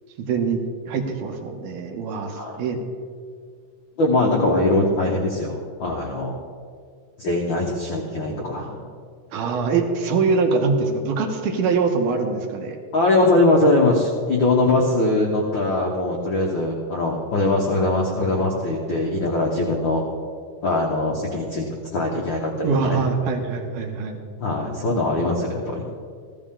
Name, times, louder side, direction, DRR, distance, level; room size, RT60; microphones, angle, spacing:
voice 1, 0.2-0.6 0.9-2.8 9.3-12.8 22.6-24.2, right 4 dB, 75° right, 3 dB, 2.5 m, -23 dB
voice 2, 4.0-6.4 7.2-8.8 12.9-20.0 20.6-21.6 21.9-23.0 24.4-25.9, left 2 dB, 60° left, -1 dB, 1.2 m, -21 dB
15.5 x 13.0 x 3.8 m, 2.1 s
omnidirectional pair, 3.8 m